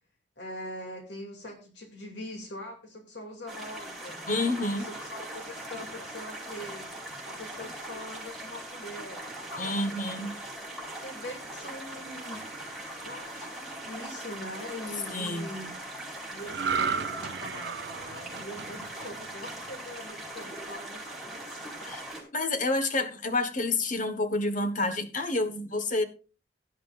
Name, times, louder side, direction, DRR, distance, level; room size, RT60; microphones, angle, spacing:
voice 1, 0.4-4.2 4.6-10.3 11.0-12.5 13.0-15.7 16.3-22.0, left 1 dB, 85° left, 2.5 m, -43 dB
sound 1, 3.5-22.2, right 1 dB, ahead, 4.7 m, -41 dB
voice 2, 4.3-4.9 9.6-10.3 15.1-15.5 21.8-22.0 22.3-26.0, left 2 dB, 45° left, 1.3 m, -29 dB
sound 2, 16.5-19.9 20.4-20.6, right 6 dB, 70° right, 0.6 m, -33 dB
16.5 x 11.0 x 2.5 m
head